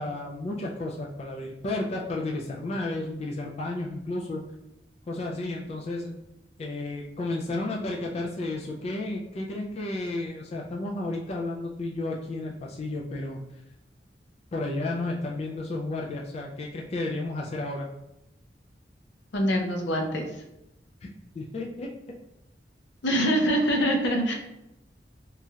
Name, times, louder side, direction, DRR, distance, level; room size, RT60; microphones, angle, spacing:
voice 1, 0.0-4.4 5.1-6.1 6.6-13.4 14.5-17.9 21.0-21.1 21.3-21.9, left 2 dB, 35° left, -1 dB, 0.3 m, -32 dB
voice 2, 19.3-20.2 23.0-24.3, equal, 80° left, 2 dB, 0.6 m, -24 dB
3.0 x 2.3 x 2.8 m, 0.89 s
head